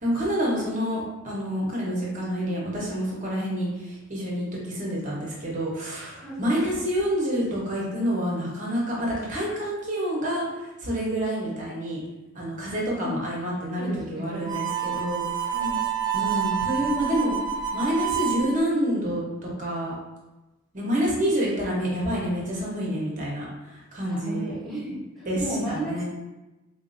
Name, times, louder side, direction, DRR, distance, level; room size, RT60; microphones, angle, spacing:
voice 1, 0.0-12.0 12.3-15.6 16.1-17.3 17.7-19.9 20.7-24.5 25.3-25.4 25.7-26.0, equal, 40° right, -4 dB, 0.9 m, -28 dB
voice 2, 6.2-6.6 13.0-13.2 13.8-14.5 14.8-15.0 15.5-15.8 24.0-26.0, equal, ahead, -10 dB, 1.1 m, -33 dB
Harmonica, 14.4-18.5, right 9 dB, 20° right, 0.4 m, -28 dB
3.9 x 2.6 x 2.6 m, 1.1 s
head